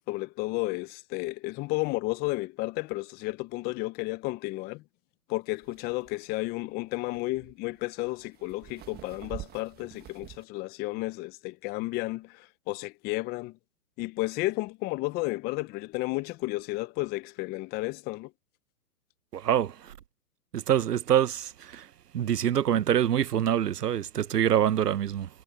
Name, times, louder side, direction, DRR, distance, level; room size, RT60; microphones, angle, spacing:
voice 1, 0.0-4.8 5.3-13.5 14.0-18.3, left 21 dB, 20° left, 0.7 m, -32 dB
sound 1, 5.6-10.4, right 13 dB, 20° right, 1.3 m, -47 dB
voice 2, 19.3-19.9 20.5-21.9 22.1-25.3, right 10 dB, 80° right, 1.0 m, -25 dB
hypercardioid pair, 125°, 47 cm